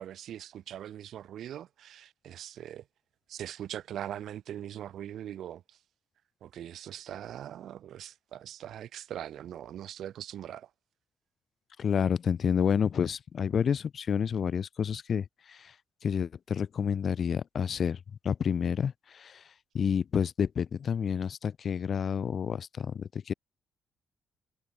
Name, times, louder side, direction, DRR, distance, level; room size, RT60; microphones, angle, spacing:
voice 1, 0.0-2.8 3.3-5.6 6.4-10.7, right 11 dB, 70° right, 2.5 m, -41 dB
voice 2, 11.8-15.7 16.0-18.0 18.2-19.4 19.7-23.3, left 7 dB, 50° left, 3.3 m, -29 dB
cardioid pair, 90°, 0 cm